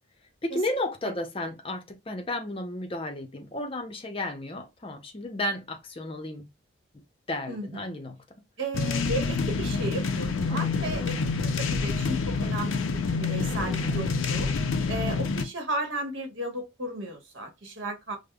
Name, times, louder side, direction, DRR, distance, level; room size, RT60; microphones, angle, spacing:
voice 1, 0.4-6.5 6.9-7.0 7.3-8.2 10.5-10.8 13.4-14.1, left 1 dB, 25° left, 0.6 m, -33 dB
voice 2, 7.5-7.9 8.6-11.1 11.4-14.5 14.9-18.2, right 2 dB, 70° right, 1.2 m, -34 dB
sound 1, 8.7-15.4, left 4 dB, 80° left, 0.5 m, -27 dB
5.1 x 2.1 x 2.3 m
head